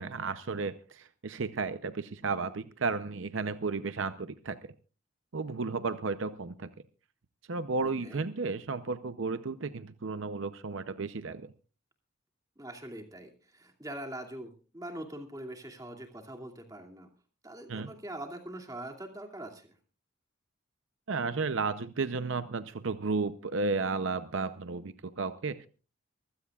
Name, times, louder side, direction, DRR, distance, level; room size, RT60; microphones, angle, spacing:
voice 1, 0.0-4.7 5.3-6.7 7.5-11.5 17.7-17.9 21.1-25.7, right 4 dB, 70° right, 12 dB, 0.7 m, -33 dB
voice 2, 7.8-8.2 12.6-17.1 17.4-19.8, right 1 dB, 15° right, 3 dB, 2.5 m, -43 dB
24.0 x 15.5 x 2.4 m, 0.35 s
head